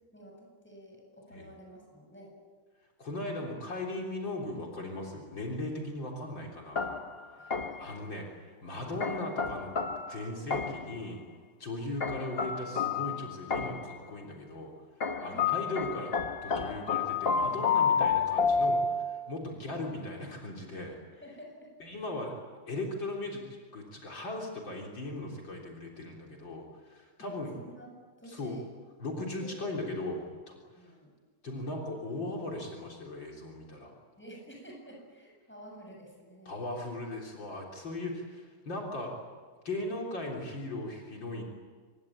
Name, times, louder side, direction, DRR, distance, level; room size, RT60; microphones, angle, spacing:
voice 1, 0.1-2.4 7.4-8.1 15.2-15.6 19.5-19.6 21.1-21.9 27.2-28.7 29.4-29.7 30.7-31.1 34.2-36.7, right 1 dB, 5° left, 0 dB, 7.7 m, -51 dB
voice 2, 3.0-7.0 7.5-9.7 10.1-11.2 11.6-14.7 15.0-16.1 16.4-21.0 21.8-22.3 22.7-23.4 23.7-27.6 28.3-28.6 29.0-30.9 31.4-33.9 36.5-39.1 39.6-41.4, left 2 dB, 65° left, -1 dB, 4.4 m, -38 dB
sound 1, 6.8-8.0 9.0-11.0 12.0-14.0 15.0-19.3, left 5 dB, 40° left, 1.0 m, -30 dB
25.5 x 22.5 x 8.9 m, 1.5 s
omnidirectional pair, 2.3 m